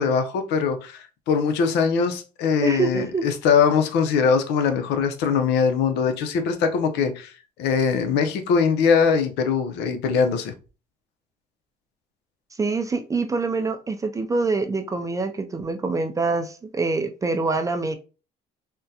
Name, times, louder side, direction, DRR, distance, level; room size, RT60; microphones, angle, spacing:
voice 1, 0.0-7.3 7.6-10.5, left 6 dB, 85° left, 0.6 m, -22 dB
voice 2, 2.6-3.3 12.6-18.0, right 3 dB, 20° right, 0.4 m, -25 dB
3.6 x 2.2 x 2.7 m
cardioid pair, 110°, 17 cm